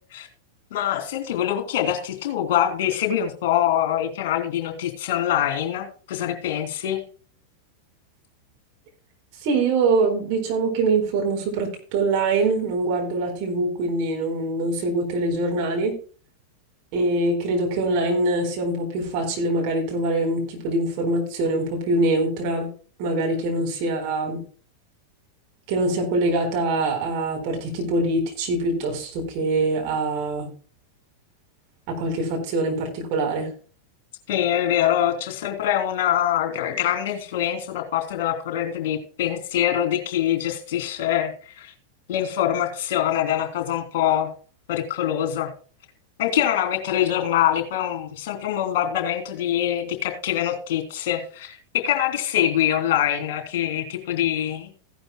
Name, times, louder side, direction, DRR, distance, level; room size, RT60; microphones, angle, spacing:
voice 1, 0.7-7.0 34.3-41.7 42.1-44.3 44.7-45.5 46.2-54.7, left 11 dB, 50° left, 6 dB, 3.1 m, -24 dB
voice 2, 9.3-15.9 16.9-22.7 23.0-24.4 25.7-30.5 31.9-33.5, right 2 dB, 45° right, 2 dB, 4.3 m, -24 dB
16.0 x 11.5 x 2.2 m, 0.40 s
figure-of-eight pair, 90°, 0 cm